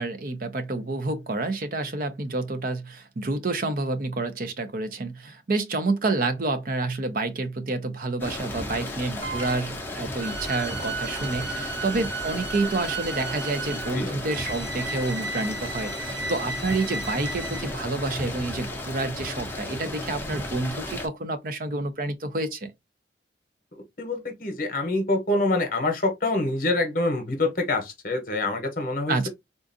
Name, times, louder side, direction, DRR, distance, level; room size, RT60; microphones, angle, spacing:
voice 1, 0.0-22.7 29.1-29.3, right 2 dB, 50° right, 0.5 m, -29 dB
sound 1, 8.2-21.1, left 1 dB, 10° left, 0.6 m, -34 dB
sound 2, 9.2-9.7 10.2-17.7, right 4 dB, 75° right, 1.1 m, -35 dB
voice 2, 24.0-29.3, left 2 dB, 50° left, 0.8 m, -26 dB
3.8 x 2.5 x 2.5 m
head